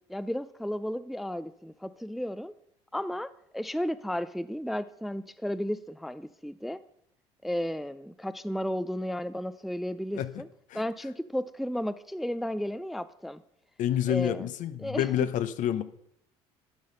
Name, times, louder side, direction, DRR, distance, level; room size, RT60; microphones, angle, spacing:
voice 1, 0.1-2.5 2.9-6.8 7.4-10.5 10.7-13.4 14.1-14.5 14.8-15.3, equal, ahead, 0.3 m, -33 dB
voice 2, 13.8-15.8, left 11 dB, 60° left, 0.6 m, -28 dB
10.5 x 4.0 x 5.4 m
hypercardioid pair, 70°, 15 cm